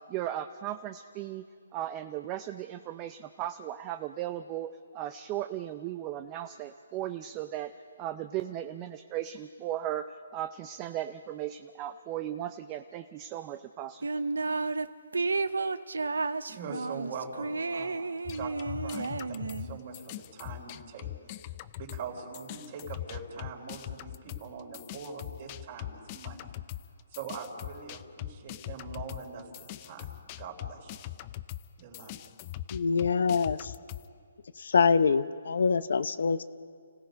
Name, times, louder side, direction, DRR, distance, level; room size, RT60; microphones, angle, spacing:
voice 1, 0.1-1.4 1.7-7.7 8.0-14.0, right 12 dB, 25° right, 8 dB, 0.5 m, -36 dB
sound 1, 14.0-14.9 15.1-19.8, right 3 dB, 90° right, 0.7 m, -32 dB
voice 2, 16.5-18.0 18.4-21.1 21.8-26.4 27.1-30.1 30.4-30.9 31.8-32.2, right 5 dB, 40° right, 2 dB, 4.1 m, -42 dB
sound 2, 18.3-22.1 22.3-34.1, left 14 dB, 30° left, 0.5 m, -41 dB
voice 3, 32.7-33.7 34.6-36.4, left 5 dB, 70° left, 14 dB, 0.7 m, -25 dB
29.5 x 17.0 x 5.2 m, 2.2 s
hypercardioid pair, 155°, 0 cm